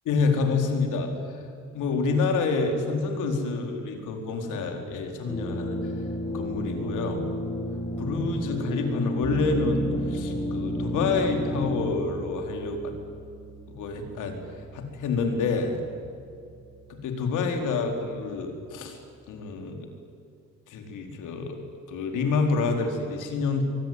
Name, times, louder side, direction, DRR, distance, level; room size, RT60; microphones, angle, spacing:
voice 1, 0.1-1.4 1.7-5.8 6.3-7.2 8.0-12.9 13.7-15.8 16.9-19.0 19.3-19.9 20.7-21.6 21.9-23.6, left 4 dB, 90° left, 4 dB, 4.4 m, -28 dB
sound 1, 5.3-11.9, left 1 dB, 20° left, 3.5 m, -31 dB
Bass guitar, 9.2-18.9, right 2 dB, 10° right, 5.4 m, -41 dB
24.0 x 23.5 x 9.5 m, 2.4 s
cardioid pair, 90°, 30 cm